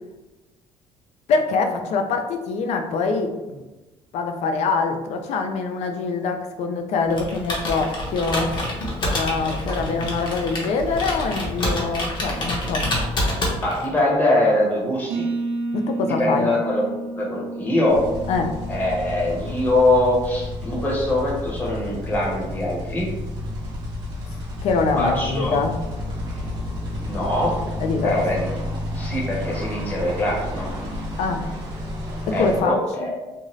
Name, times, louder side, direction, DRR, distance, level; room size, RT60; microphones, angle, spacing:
voice 1, 1.3-3.6 4.1-8.6 9.0-12.9 15.7-16.5 18.3-18.5 24.6-25.8 27.8-28.2 31.2-31.5 32.3-33.1, left 4 dB, 70° left, 5 dB, 0.4 m, -24 dB
Computer keyboard, 7.1-14.0, left 1 dB, 40° left, 0.8 m, -27 dB
voice 2, 13.6-15.3 16.2-16.8 17.2-18.0 18.7-23.1 24.9-25.6 27.1-27.5 28.0-28.5 28.9-30.7 32.3-33.1, left 1 dB, 15° left, -5 dB, 0.8 m, -22 dB
sound 1, 15.1-20.7, right 2 dB, 85° right, 0.5 m, -32 dB
sound 2, 17.9-32.6, left 1 dB, 40° right, 0.9 m, -31 dB
2.6 x 2.4 x 3.0 m, 1.1 s
cardioid pair, 130°, 12 cm